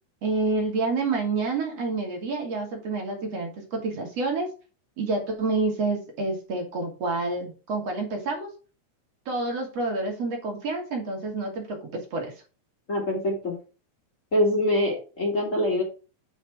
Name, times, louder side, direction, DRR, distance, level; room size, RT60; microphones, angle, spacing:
voice 1, 0.2-4.5 5.0-8.5 9.3-12.3, right 3 dB, 55° right, 1 dB, 3.2 m, -28 dB
voice 2, 12.9-13.6 14.3-15.8, left 1 dB, 25° left, -2 dB, 3.0 m, -24 dB
9.0 x 5.2 x 4.9 m, 0.34 s
omnidirectional pair, 3.4 m